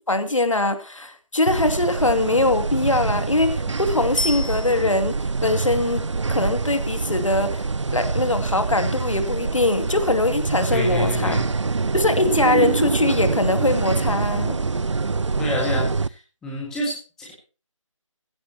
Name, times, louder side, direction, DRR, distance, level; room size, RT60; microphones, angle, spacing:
voice 1, 0.1-7.6 7.9-11.4 11.9-14.6, left 2 dB, 70° left, 8 dB, 2.5 m, -22 dB
sound 1, 1.5-16.1, right 4 dB, 60° right, 0.5 m, -25 dB
Bicycle bell, 4.2-5.3 14.4-14.5, left 2 dB, 90° left, 1.1 m, -30 dB
voice 2, 10.7-11.5 15.4-17.3, left 1 dB, 5° left, -3 dB, 1.8 m, -27 dB
16.0 x 15.5 x 2.9 m, 0.34 s
figure-of-eight pair, 160°, 17 cm